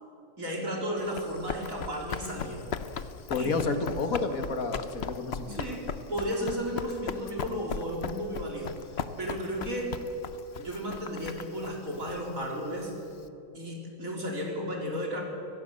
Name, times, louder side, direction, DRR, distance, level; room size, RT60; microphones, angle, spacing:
voice 1, 0.4-2.7 3.3-3.5 5.5-8.8 9.2-10.0 10.6-12.9 13.5-15.2, equal, 75° right, -1 dB, 4.4 m, -34 dB
Run, 1.0-13.2, left 6 dB, 55° left, 1.0 m, -38 dB
voice 2, 3.3-5.8, left 4 dB, 80° left, 7 dB, 2.0 m, -30 dB
25.0 x 17.5 x 7.7 m, 2.7 s
omnidirectional pair, 1.4 m